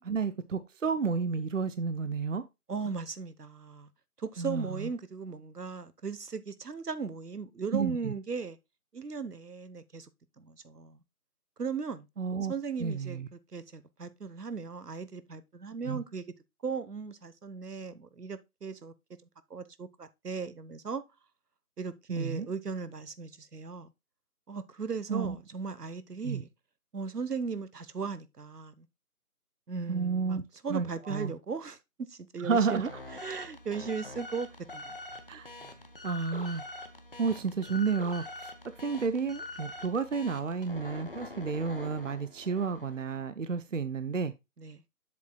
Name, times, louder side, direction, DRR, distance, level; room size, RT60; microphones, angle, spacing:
voice 1, 0.0-2.4 4.4-4.9 7.7-8.1 12.2-12.5 12.8-13.3 15.9-16.0 22.1-22.5 25.1-25.4 26.2-26.4 29.9-30.4 30.7-31.3 32.4-32.9 35.3-35.5 36.0-36.6 37.2-38.5 38.8-44.3, right 5 dB, 55° right, 0.6 m, -31 dB
voice 2, 2.7-3.9 4.2-8.6 8.9-10.1 10.4-11.0 11.6-12.1 12.5-16.3 16.6-18.9 19.5-21.0 21.8-23.9 24.5-26.5 26.9-28.9 29.7-30.4 30.6-32.9 33.2-35.0 35.6-35.7 44.6-44.8, right 5 dB, 85° right, 1.1 m, -37 dB
sound 1, 32.5-43.1, left 2 dB, 40° left, 0.8 m, -45 dB
7.6 x 7.1 x 2.2 m
figure-of-eight pair, 165°, 46 cm